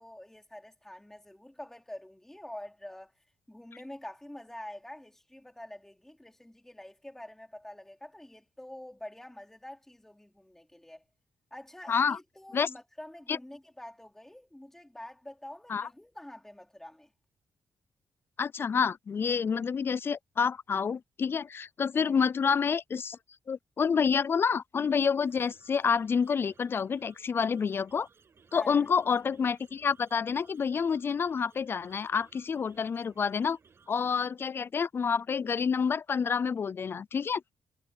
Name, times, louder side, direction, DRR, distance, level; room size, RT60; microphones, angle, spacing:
voice 1, 0.0-3.1 3.5-11.0 11.5-17.1 21.9-22.2 28.5-28.9, left 1 dB, 5° left, 4.2 m, -47 dB
voice 2, 11.9-12.2 12.5-12.7 13.3-13.4 15.7-15.9 18.4-23.2 23.5-28.1 28.5-33.6 33.9-37.5, left 6 dB, 35° left, 0.3 m, -28 dB
sound 1, 25.2-34.1, right 5 dB, 35° right, 6.9 m, -62 dB
wide cardioid pair, 170°, 7 cm